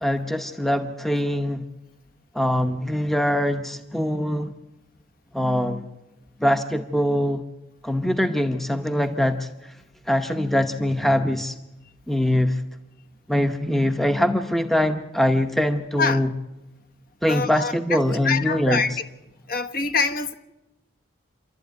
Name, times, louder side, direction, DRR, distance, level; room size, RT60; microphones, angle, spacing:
voice 1, 0.0-1.6 2.3-4.5 5.3-5.9 6.4-7.4 7.8-9.5 10.1-11.5 12.1-12.6 13.3-16.3 17.2-18.8, left 1 dB, ahead, 0.8 m, -23 dB
voice 2, 17.3-18.9 19.5-20.3, left 4 dB, 45° left, 1.2 m, -25 dB
28.0 x 12.0 x 9.3 m
head